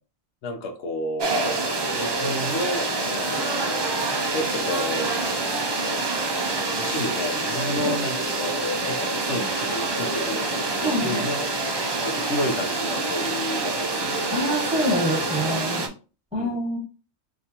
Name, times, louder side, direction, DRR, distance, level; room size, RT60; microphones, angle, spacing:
voice 1, 0.4-1.6 1.9-3.9 4.3-5.2 6.6-11.5 12.0-14.4 15.3-15.9 16.3-16.6, left 1 dB, 90° left, 1.0 m, -31 dB
sound 1, 1.2-15.9, right 3 dB, 40° right, 0.4 m, -26 dB
voice 2, 10.8-11.3 14.3-15.9 16.3-16.8, equal, 5° right, 1.7 m, -26 dB
4.8 x 2.6 x 2.8 m
omnidirectional pair, 1.1 m